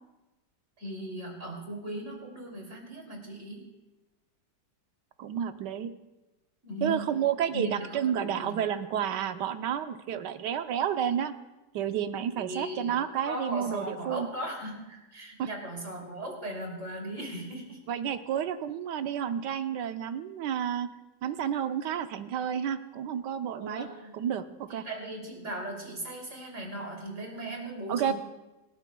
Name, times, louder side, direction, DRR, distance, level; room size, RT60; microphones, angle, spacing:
voice 1, 0.8-3.7 6.6-7.1 7.5-8.8 12.3-13.0 13.2-17.8 23.6-24.2 24.7-28.1, right 1 dB, 45° right, -1 dB, 3.4 m, -38 dB
voice 2, 5.2-5.9 6.8-11.3 11.7-14.3 15.4-15.5 17.9-20.9 21.2-23.9 24.1-24.8 27.9-28.1, right 9 dB, 85° right, 9 dB, 1.4 m, -30 dB
27.0 x 12.5 x 2.3 m, 1.0 s
omnidirectional pair, 1.8 m